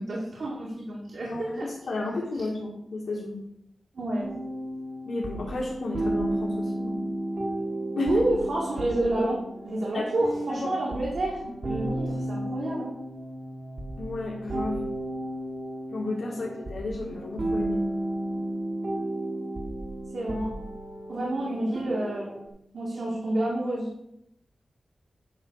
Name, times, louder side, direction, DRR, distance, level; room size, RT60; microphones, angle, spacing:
voice 1, 0.0-1.7 3.9-4.3 8.0-13.0 16.3-16.4 20.1-20.5 21.1-22.3 22.7-23.9, right 1 dB, 65° right, -5 dB, 2.0 m, -29 dB
voice 2, 1.3-3.4 5.1-7.0 8.0-8.1 9.9-10.0 10.5-10.9 11.4-11.8 14.0-14.9 15.9-17.8, left 2 dB, 75° left, -5 dB, 1.7 m, -33 dB
sound 1, 4.2-22.5, right 1 dB, 50° right, 1.4 m, -33 dB
10.0 x 3.8 x 6.3 m, 0.78 s
wide cardioid pair, 145°, 0 cm